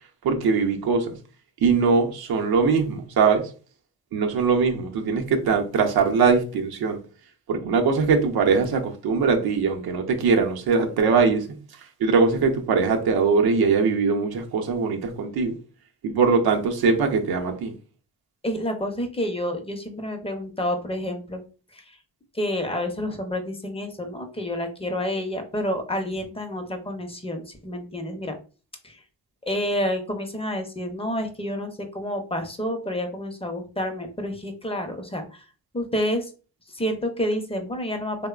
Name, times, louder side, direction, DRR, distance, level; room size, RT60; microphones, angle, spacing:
voice 1, 0.2-1.2 1.6-3.5 4.1-7.0 7.5-11.4 12.0-15.6 16.0-17.7, right 5 dB, 75° right, 0.6 m, -21 dB
voice 2, 18.4-21.4 21.7-22.0 22.3-28.3 28.8-29.0 29.4-35.4 35.7-36.3 36.7-38.3, equal, 15° left, 0.6 m, -29 dB
2.9 x 2.0 x 2.3 m
supercardioid pair, 55°, 38 cm